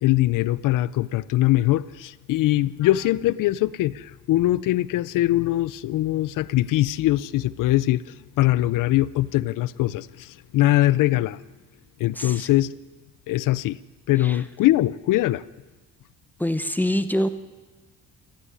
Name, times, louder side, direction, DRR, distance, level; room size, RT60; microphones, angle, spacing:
voice 1, 0.0-11.4 12.0-12.7 13.3-13.8 14.1-15.4, left 15 dB, 80° left, 19 dB, 0.6 m, -22 dB
voice 2, 12.1-12.5 14.2-14.4 16.4-17.3, equal, 5° left, 11 dB, 0.8 m, -25 dB
21.0 x 14.5 x 9.8 m, 1.2 s
cardioid pair, 160°, 31 cm